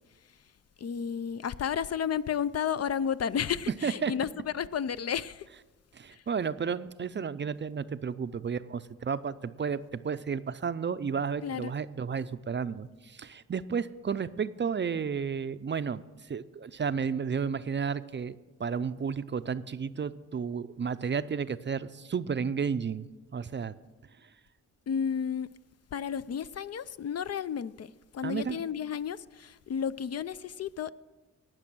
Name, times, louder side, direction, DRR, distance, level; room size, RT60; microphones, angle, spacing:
voice 1, 0.8-5.5 6.1-6.2 11.4-11.7 24.9-25.5 25.9-30.9, left 8 dB, 50° left, 0.4 m, -32 dB
voice 2, 5.9-16.0 16.3-23.7 28.2-28.6, right 6 dB, 35° right, 0.5 m, -32 dB
18.0 x 6.1 x 6.1 m
cardioid pair, 65°, 32 cm